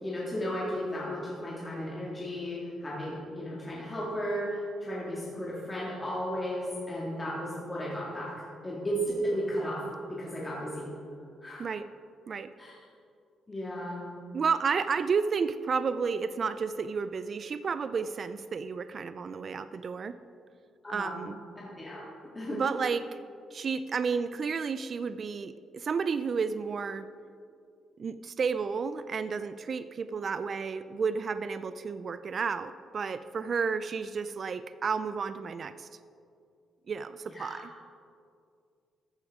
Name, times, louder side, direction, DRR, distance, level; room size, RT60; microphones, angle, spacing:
voice 1, 0.0-8.3 8.6-9.8 10.1-10.9 11.4-11.7 12.6-12.7 13.5-14.0 20.8-21.2 21.6-22.0 22.4-22.6 37.3-37.6, equal, 20° left, -6 dB, 2.0 m, -34 dB
voice 2, 14.3-20.2 20.9-21.4 22.5-23.2 23.5-27.1 28.0-35.9 36.9-37.7, right 5 dB, 45° right, 13 dB, 0.3 m, -31 dB
14.0 x 6.9 x 3.6 m, 2.4 s
cardioid pair, 90°, 0 cm